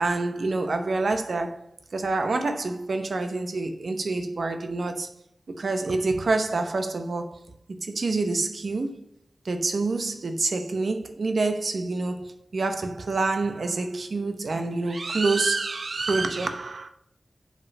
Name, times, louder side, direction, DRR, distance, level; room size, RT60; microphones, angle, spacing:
voice 1, 0.0-1.7 1.9-5.1 5.6-7.5 7.8-9.0 9.4-16.9, right 3 dB, 80° right, 0.8 m, -27 dB
5.4 x 5.1 x 5.3 m
wide cardioid pair, 65°, 0 cm